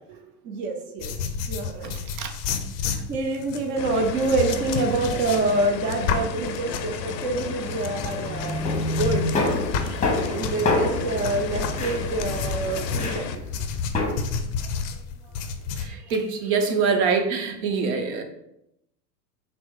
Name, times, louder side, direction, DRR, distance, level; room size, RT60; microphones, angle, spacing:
voice 1, 0.4-1.1 1.5-1.9 3.1-8.6 8.9-9.3 10.3-13.3, right 3 dB, 25° right, 3 dB, 0.4 m, -26 dB
sound 1, 1.0-10.7 11.2-15.9, left 6 dB, 40° left, 0.5 m, -31 dB
sound 2, 3.8-13.4, left 7 dB, 80° left, 0.6 m, -34 dB
sound 3, 8.2-14.1, left 2 dB, 15° left, 0.9 m, -27 dB
voice 2, 15.8-18.2, right 5 dB, 60° right, 5 dB, 0.9 m, -25 dB
5.8 x 2.0 x 3.6 m, 0.81 s
hypercardioid pair, 90°, 50 cm